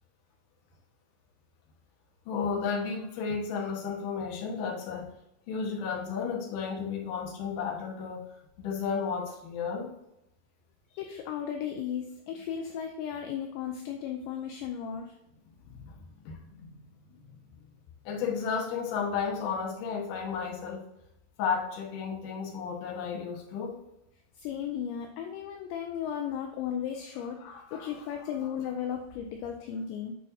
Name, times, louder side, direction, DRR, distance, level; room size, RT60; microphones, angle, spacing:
voice 1, 2.3-5.1 5.5-8.2 8.6-9.9 15.6-16.8 17.1-17.2 18.0-20.8 21.4-23.8 27.4-27.9, left 6 dB, 65° left, -2 dB, 2.0 m, -33 dB
voice 2, 11.0-15.1 24.4-30.1, left 8 dB, 85° left, 4 dB, 2.5 m, -35 dB
8.7 x 6.3 x 2.7 m, 0.86 s
omnidirectional pair, 5.9 m